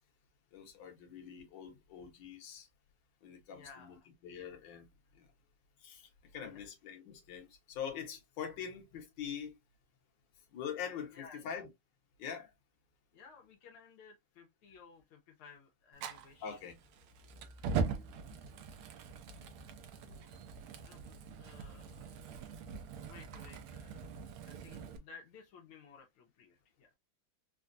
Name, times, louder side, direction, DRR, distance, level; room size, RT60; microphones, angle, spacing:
voice 1, 0.5-2.7 3.2-4.0 4.2-4.9 5.1-5.2 5.8-9.5 10.5-11.7 12.2-12.5 16.4-16.8 19.2-19.3 20.0-20.3, left 7 dB, 60° left, 1.6 m, -44 dB
voice 2, 3.5-4.0 6.4-6.7 11.1-11.6 13.1-16.6 20.8-22.4 23.0-24.1 24.5-26.9, left 5 dB, 80° left, 1.6 m, -57 dB
Fire, 16.0-25.0, right 5 dB, 75° right, 1.5 m, -42 dB
4.4 x 2.3 x 2.4 m
omnidirectional pair, 2.4 m